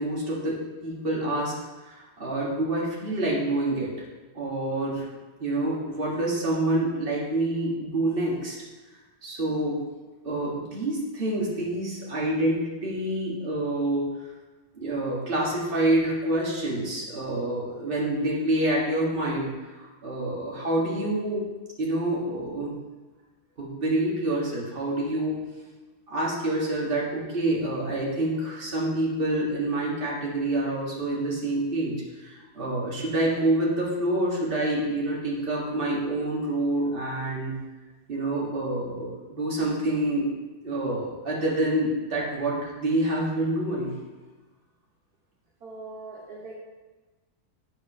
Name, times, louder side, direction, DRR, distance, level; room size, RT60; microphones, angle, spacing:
voice 1, 0.0-1.5 1.8-3.9 4.3-5.1 5.4-8.6 9.2-9.8 10.2-14.1 14.7-19.5 19.8-21.4 21.8-22.7 23.6-25.4 26.1-37.6 38.1-40.3 40.6-44.0, right 1 dB, 30° right, -5 dB, 2.0 m, -27 dB
voice 2, 45.6-46.5, right 3 dB, 60° right, -5 dB, 1.8 m, -41 dB
8.5 x 4.7 x 5.5 m, 1.2 s
omnidirectional pair, 1.9 m